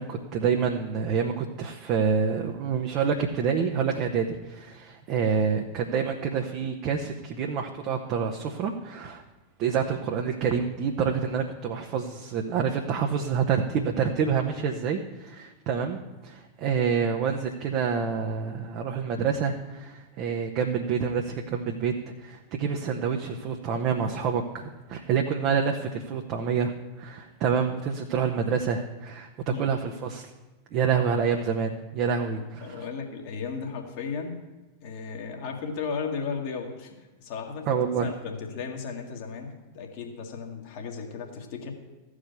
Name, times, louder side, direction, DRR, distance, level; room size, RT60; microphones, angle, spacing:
voice 1, 0.0-9.2 9.6-30.3 30.7-32.8 37.7-38.1, right 6 dB, 40° right, 2 dB, 0.9 m, -27 dB
voice 2, 32.6-34.4 34.8-36.9 37.2-41.7, left 5 dB, 50° left, 1 dB, 2.0 m, -35 dB
14.5 x 5.0 x 8.2 m, 1.2 s
figure-of-eight pair, 90°, 0 cm